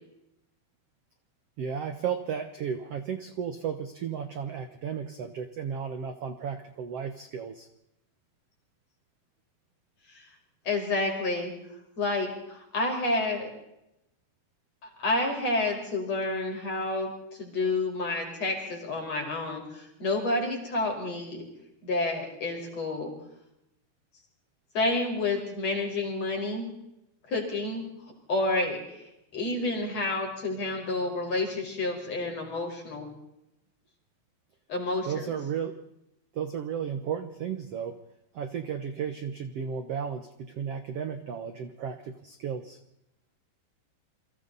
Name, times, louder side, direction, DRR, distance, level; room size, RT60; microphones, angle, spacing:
voice 1, 1.6-7.7 35.1-35.7 36.3-38.0 38.3-42.8, right 7 dB, 70° right, 8 dB, 1.5 m, -34 dB
voice 2, 10.7-11.5 12.0-13.5 15.0-17.1 17.4-21.4 21.8-23.1 24.7-26.7 27.3-27.8 28.3-29.0 29.3-33.1 34.7-35.3, left 2 dB, 40° left, 1 dB, 6.0 m, -29 dB
29.0 x 24.0 x 4.1 m, 0.85 s
omnidirectional pair, 4.6 m